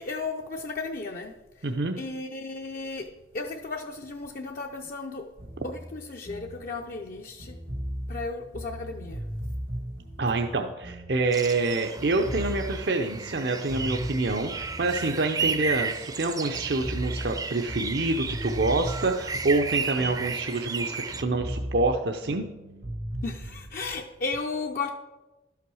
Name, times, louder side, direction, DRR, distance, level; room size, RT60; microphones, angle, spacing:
voice 1, 0.0-1.3 2.0-5.3 5.6-7.6 8.1-9.3 23.2-24.9, left 3 dB, 50° left, 2 dB, 0.6 m, -34 dB
voice 2, 1.6-1.9 10.2-22.4, right 3 dB, 60° right, 4 dB, 0.6 m, -27 dB
sound 1, 5.4-11.7 12.0-16.3 16.5-20.8 21.1-23.7, equal, 90° right, 2.1 m, -37 dB
sound 2, 11.3-21.2, right 5 dB, 20° right, 0.5 m, -33 dB
12.0 x 5.8 x 6.2 m, 1.1 s
head